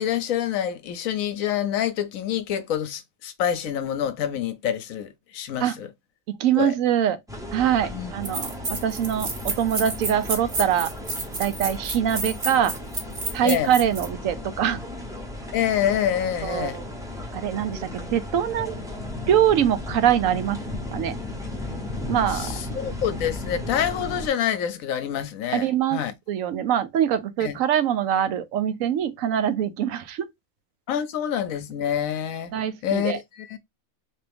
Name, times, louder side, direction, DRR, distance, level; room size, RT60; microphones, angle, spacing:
voice 1, 0.0-5.9 6.6-6.7 7.9-8.1 13.4-13.7 15.5-16.8 22.3-26.1 27.4-27.6 30.9-32.5 32.8-33.6, left 9 dB, 75° left, 1.0 m, -27 dB
voice 2, 6.3-7.2 7.5-10.9 11.4-12.7 13.3-14.8 16.4-16.9 17.3-18.8 19.3-20.6 20.9-21.2 22.1-22.5 25.5-26.0 26.3-30.3 32.5-33.2, right 10 dB, 75° right, 1.0 m, -23 dB
sound 1, 7.3-24.3, left 2 dB, 5° right, 0.7 m, -35 dB
sound 2, 7.7-7.8 8.2-14.1, right 3 dB, 40° right, 1.1 m, -31 dB
3.4 x 3.0 x 3.4 m
omnidirectional pair, 1.5 m